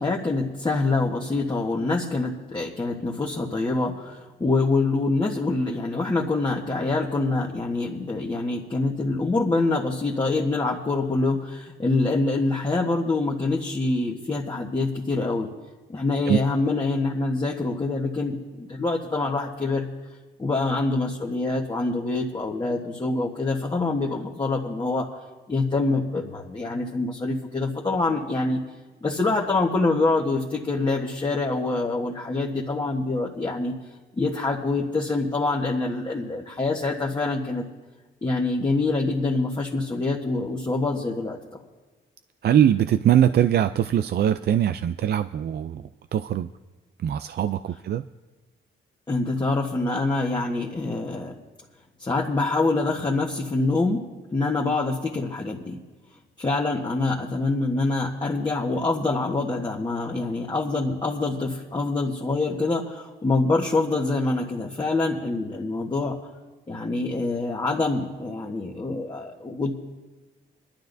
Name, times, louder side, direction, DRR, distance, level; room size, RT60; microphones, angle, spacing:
voice 1, 0.0-15.5 15.9-19.9 20.4-25.1 25.5-28.6 29.0-33.7 34.1-37.6 38.2-41.4 49.1-51.3 52.0-54.0 54.3-55.8 56.4-66.1 66.7-69.7, left 3 dB, 20° left, -3 dB, 1.4 m, -25 dB
voice 2, 42.4-46.5 47.0-48.0, right 10 dB, 50° right, 11 dB, 0.4 m, -22 dB
24.0 x 12.0 x 2.7 m, 1.2 s
cardioid pair, 85°, 21 cm